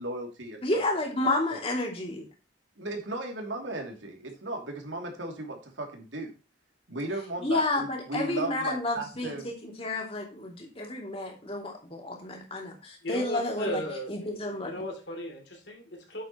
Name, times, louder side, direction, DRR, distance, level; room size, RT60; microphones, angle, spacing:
voice 1, 0.0-1.6 2.8-6.3 6.9-9.4, right 2 dB, 90° right, 2 dB, 2.7 m, -36 dB
voice 2, 0.6-2.2 7.4-9.4 9.6-13.8 14.1-14.8, left 2 dB, 30° left, 1 dB, 2.7 m, -31 dB
voice 3, 13.0-16.2, equal, 70° left, 2 dB, 3.1 m, -36 dB
8.6 x 7.6 x 3.0 m, 0.32 s
head